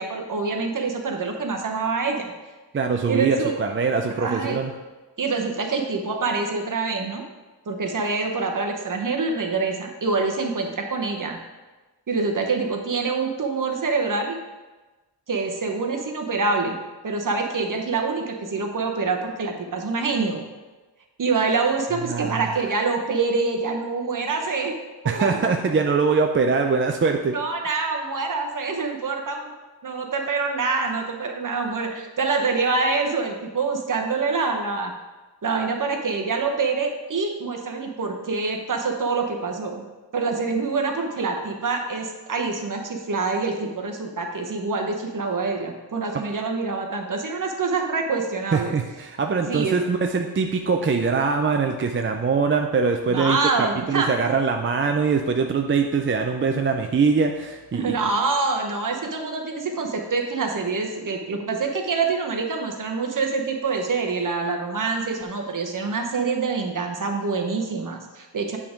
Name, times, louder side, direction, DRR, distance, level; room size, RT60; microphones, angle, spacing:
voice 1, 0.0-2.3 3.1-3.6 4.2-4.6 5.2-7.2 7.7-11.4 12.1-14.4 15.3-16.8 17.0-20.4 21.2-24.8 25.2-25.4 27.3-29.5 29.8-34.9 35.4-39.9 40.1-48.7 49.5-49.8 53.1-54.1 57.7-68.6, right 4 dB, 45° right, 2 dB, 0.9 m, -26 dB
voice 2, 2.7-4.7 22.1-22.4 25.1-27.3 48.5-58.0, right 5 dB, 30° right, 4 dB, 0.4 m, -23 dB
8.4 x 3.6 x 5.0 m, 1.2 s
wide cardioid pair, 140°, 42 cm